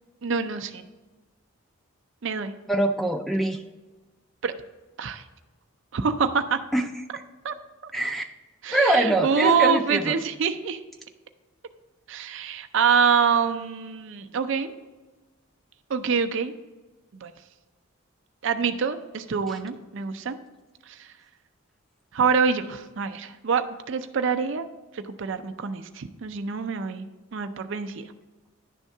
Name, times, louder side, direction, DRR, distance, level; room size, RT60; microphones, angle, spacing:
voice 1, 0.2-0.8 2.2-2.5 4.4-4.6 5.0-5.2 5.9-6.6 7.4-7.5 7.8-7.9 8.6-10.8 12.1-14.7 15.9-16.5 17.1-17.3 18.4-20.4 20.9-21.1 22.1-24.7 24.9-27.1 27.3-28.1, right 6 dB, 60° right, 8 dB, 0.5 m, -25 dB
voice 2, 2.7-3.6 6.7-6.9 7.9-8.3 8.7-10.1, right 1 dB, ahead, 5 dB, 0.3 m, -23 dB
10.0 x 3.6 x 5.4 m, 1.2 s
head